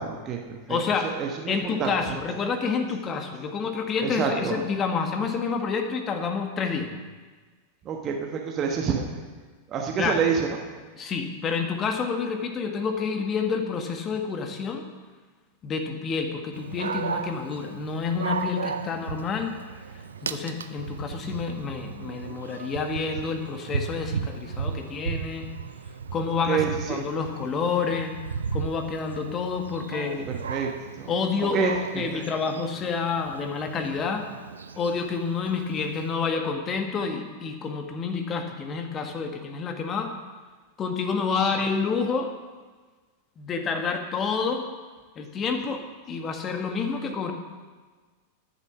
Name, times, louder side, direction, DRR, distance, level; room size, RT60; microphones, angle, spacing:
voice 1, 0.0-0.8 1.0-2.1 4.0-4.6 7.8-9.2 9.7-10.6 26.5-27.0 29.9-30.2 30.5-30.7 31.0-31.1 31.5-32.2 41.4-41.5, right 6 dB, 30° right, 2 dB, 1.3 m, -28 dB
voice 2, 0.7-1.1 1.5-6.9 10.0-10.2 11.0-14.8 15.6-19.6 20.2-25.5 26.1-28.2 28.5-30.3 31.1-34.3 34.8-40.1 40.8-42.3 43.4-44.6 45.1-47.3, left 5 dB, 25° left, 5 dB, 1.5 m, -28 dB
Dog, 16.5-36.1, right 6 dB, 70° right, 0.6 m, -36 dB
12.5 x 7.3 x 5.9 m, 1.4 s
figure-of-eight pair, 90°, 0 cm